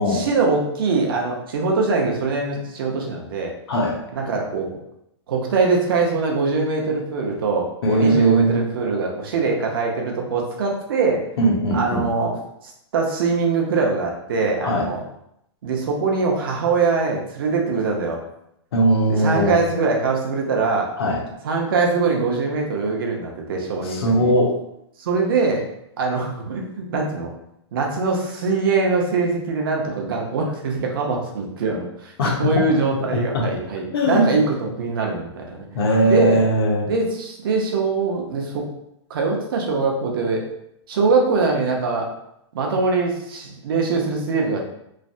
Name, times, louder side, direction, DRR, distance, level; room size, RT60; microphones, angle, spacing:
voice 1, 0.1-3.5 4.1-4.8 5.3-11.2 11.7-12.3 12.9-15.0 15.6-18.2 19.1-20.9 21.4-24.3 25.0-25.7 26.0-27.3 27.7-32.1 32.4-35.7 36.0-36.4 36.9-38.6 39.1-40.4 40.9-42.1 42.5-44.7, right 4 dB, 50° right, 0 dB, 0.6 m, -22 dB
voice 2, 7.8-8.6 11.4-12.1 14.6-14.9 18.7-19.6 21.0-21.2 23.8-24.6 32.2-32.3 33.1-33.5 33.9-34.3 35.7-36.9, right 1 dB, 55° left, 0 dB, 0.7 m, -19 dB
3.2 x 2.0 x 2.5 m, 0.78 s
hypercardioid pair, 170°, 15 cm